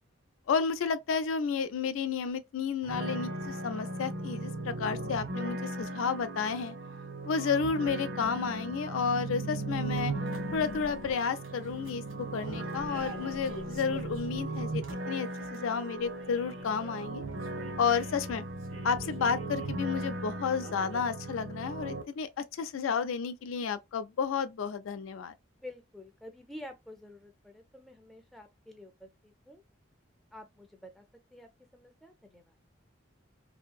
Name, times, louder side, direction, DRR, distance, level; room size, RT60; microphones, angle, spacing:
voice 1, 0.5-6.7 7.2-10.1 10.5-12.0 12.3-17.3 17.8-18.4 18.8-25.3, left 6 dB, 80° left, 0.4 m, -31 dB
sound 1, 2.8-22.0, right 2 dB, 65° right, 0.7 m, -37 dB
sound 2, 9.7-20.2 20.5-21.0, right 2 dB, 80° right, 1.2 m, -49 dB
voice 2, 25.6-29.6 30.3-31.0 31.3-32.4, left 1 dB, ahead, 0.4 m, -49 dB
2.8 x 2.6 x 2.2 m
head